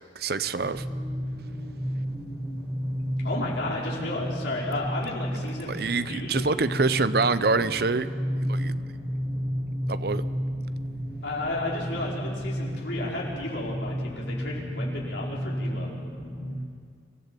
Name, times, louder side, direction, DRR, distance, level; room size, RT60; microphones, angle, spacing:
voice 1, 0.2-0.8 5.7-8.1 8.4-8.7 9.9-10.2, right 4 dB, 55° right, 13 dB, 0.7 m, -25 dB
sound 1, 0.6-16.5, equal, 5° right, 5.0 m, -32 dB
voice 2, 3.2-6.5 11.2-15.9, left 2 dB, 75° left, -4 dB, 4.9 m, -33 dB
26.0 x 15.5 x 7.7 m, 2.2 s
head